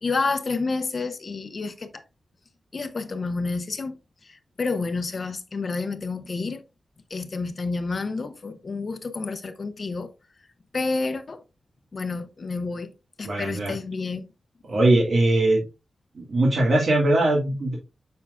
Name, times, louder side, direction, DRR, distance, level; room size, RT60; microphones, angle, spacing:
voice 1, 0.0-2.0 2.7-4.0 4.2-6.6 7.1-10.1 10.7-11.4 11.9-12.9 13.2-14.3, left 3 dB, 40° left, 0.8 m, -29 dB
voice 2, 13.2-13.7 14.7-15.6 16.2-17.7, right 2 dB, 55° right, 1.8 m, -20 dB
7.2 x 5.7 x 2.4 m
wide cardioid pair, 150°, 0 cm